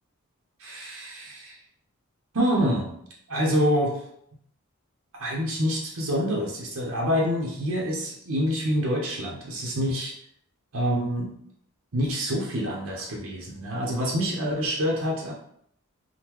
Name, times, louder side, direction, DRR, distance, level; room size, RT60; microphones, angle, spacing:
voice 1, 0.6-1.6 2.3-3.0 3.3-4.0 5.2-10.1 10.7-11.4 11.9-15.3, equal, 65° right, -2 dB, 0.7 m, -26 dB
3.7 x 2.1 x 3.0 m, 0.70 s
head